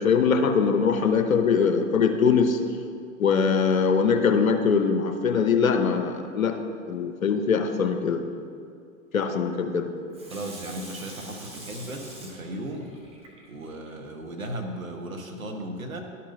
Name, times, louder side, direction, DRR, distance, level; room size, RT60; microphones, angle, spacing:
voice 1, 0.0-2.6 3.2-6.6 6.9-8.2 9.1-9.9, left 6 dB, 85° left, 6 dB, 0.8 m, -22 dB
Water tap faucet / Sink (filling or washing), 10.1-13.9 14.4-14.5, right 1 dB, 15° right, 1.0 m, -44 dB
voice 2, 10.3-12.9 13.5-16.0, right 1 dB, 85° right, 3 dB, 1.0 m, -36 dB
11.5 x 5.5 x 2.7 m, 2.4 s
figure-of-eight pair, 105°, 40 cm